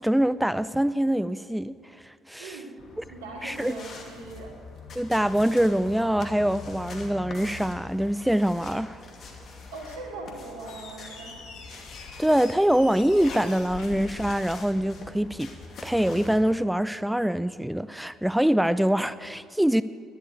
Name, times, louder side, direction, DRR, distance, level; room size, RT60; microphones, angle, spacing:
voice 1, 0.0-1.8 2.0-2.6 3.4-3.8 4.9-9.0 12.2-15.5 15.8-19.8, equal, 5° right, 0.4 m, -24 dB
voice 2, 2.4-2.7 3.1-4.5 9.7-11.3, right 2 dB, 80° right, 2.6 m, -40 dB
sound 1, 2.8-16.5, left 3 dB, 50° left, 2.4 m, -43 dB
Squeak, 10.6-15.2, left 5 dB, 70° left, 2.0 m, -46 dB
11.5 x 11.0 x 9.3 m
hypercardioid pair, 50°, 0 cm